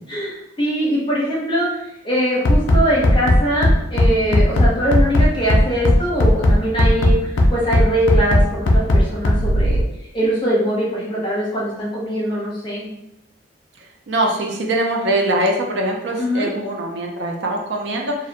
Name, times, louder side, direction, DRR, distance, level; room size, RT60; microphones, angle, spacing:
voice 1, 0.1-9.8 10.1-12.9 16.2-16.5, equal, 25° left, -6 dB, 0.7 m, -22 dB
Bass drum, 2.4-9.8, left 1 dB, 85° left, 0.4 m, -14 dB
voice 2, 14.1-18.2, right 1 dB, 65° right, 1 dB, 0.4 m, -22 dB
2.5 x 2.0 x 2.7 m, 0.82 s
head